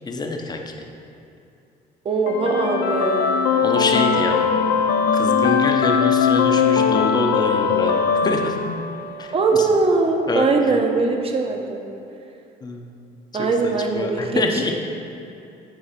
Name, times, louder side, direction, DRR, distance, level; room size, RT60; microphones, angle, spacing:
voice 1, 0.0-0.6 3.6-4.5 5.1-8.5 9.2-9.7 10.3-10.5 12.6-12.8 13.6-14.7, left 2 dB, 25° left, 3 dB, 0.6 m, -25 dB
voice 2, 2.0-3.3 9.3-11.8 13.3-14.6, right 3 dB, 35° right, 3 dB, 0.8 m, -21 dB
sound 1, 2.3-9.2, left 6 dB, 80° left, 0.5 m, -20 dB
8.5 x 3.2 x 5.1 m, 2.7 s
cardioid pair, 110°, 17 cm